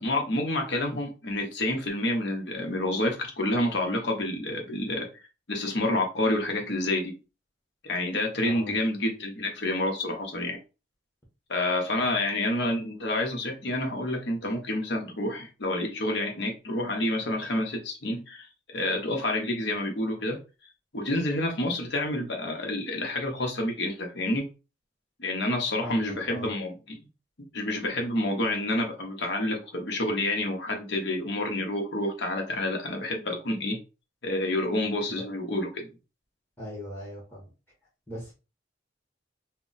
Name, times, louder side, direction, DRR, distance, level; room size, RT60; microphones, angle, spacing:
voice 1, 0.0-5.1 5.5-7.1 7.8-10.6 11.5-18.5 18.7-20.4 20.9-24.5 25.2-27.0 27.5-33.8 34.2-35.9, left 1 dB, 65° left, 2 dB, 0.8 m, -28 dB
voice 2, 8.4-8.8 25.8-26.5 36.6-37.5 38.1-38.3, equal, 10° left, -4 dB, 0.8 m, -39 dB
2.2 x 2.1 x 3.8 m, 0.32 s
head